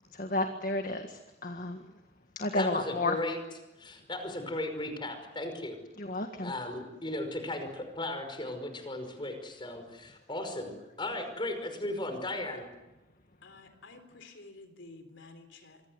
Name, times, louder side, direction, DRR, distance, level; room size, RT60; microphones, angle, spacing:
voice 1, 0.1-1.9 2.4-3.2 6.0-6.5, left 2 dB, 45° left, 5 dB, 1.8 m, -32 dB
voice 2, 2.5-3.4 3.8-5.8 6.4-12.6, left 1 dB, 25° left, 7 dB, 5.4 m, -36 dB
voice 3, 13.4-15.8, left 3 dB, 75° left, 7 dB, 3.8 m, -51 dB
27.0 x 24.5 x 8.0 m, 1.0 s
head